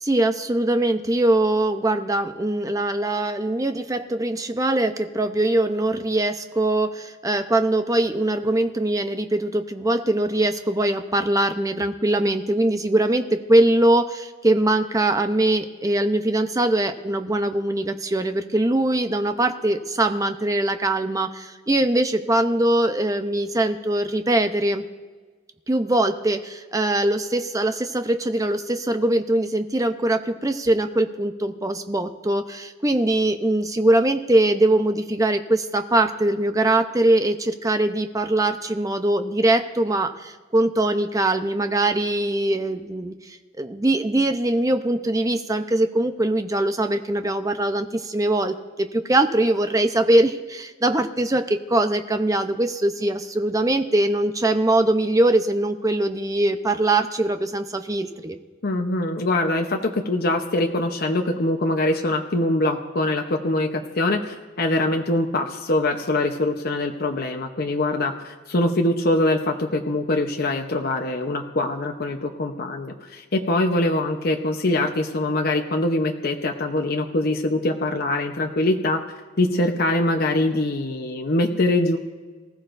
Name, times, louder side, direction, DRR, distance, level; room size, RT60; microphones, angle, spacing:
voice 1, 0.0-24.8 25.7-43.1 43.6-58.4, right 1 dB, 20° right, 7 dB, 0.7 m, -22 dB
voice 2, 58.6-79.0 79.4-82.0, left 2 dB, 55° left, 3 dB, 0.9 m, -23 dB
24.0 x 14.5 x 2.6 m, 1.4 s
head